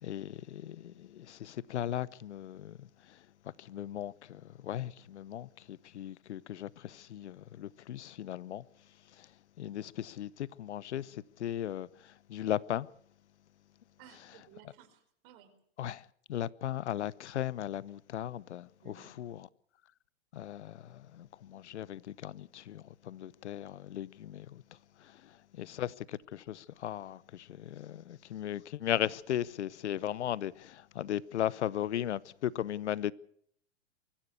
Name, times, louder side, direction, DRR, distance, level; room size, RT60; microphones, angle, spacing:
voice 1, 0.0-2.7 3.7-8.6 9.6-11.9 12.3-12.9 15.8-16.0 16.3-19.5 20.3-24.6 25.6-25.9 26.3-33.1, left 11 dB, 70° left, 0.9 m, -37 dB
voice 2, 14.0-15.5 18.8-19.1, right 9 dB, 45° right, 4.8 m, -57 dB
24.0 x 14.5 x 8.2 m
hypercardioid pair, 125°, 35 cm